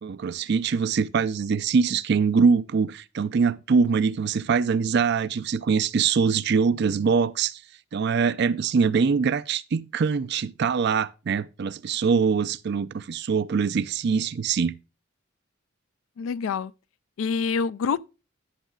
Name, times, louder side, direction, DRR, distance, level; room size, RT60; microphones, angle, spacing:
voice 1, 0.0-7.6 7.9-14.7, right 5 dB, 55° right, 0.4 m, -23 dB
voice 2, 16.2-16.7 17.2-18.0, left 5 dB, 75° left, 0.3 m, -26 dB
11.5 x 7.3 x 2.3 m
head